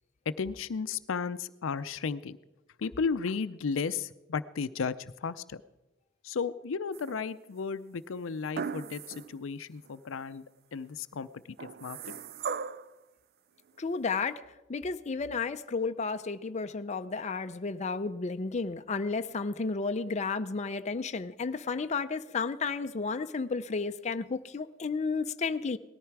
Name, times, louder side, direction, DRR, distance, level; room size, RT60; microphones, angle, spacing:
voice 1, 0.3-2.4 2.8-5.6 6.2-10.4 10.7-12.1, left 5 dB, 85° left, 14 dB, 0.5 m, -34 dB
sound 1, 6.9-7.5 8.5-9.4 9.8-9.9 11.6-12.9 14.1-14.2, right 6 dB, 55° right, 0.5 m, -38 dB
voice 2, 13.8-14.4 14.7-25.8, left 4 dB, 35° left, 9 dB, 0.5 m, -32 dB
18.5 x 13.5 x 4.7 m, 1.0 s
head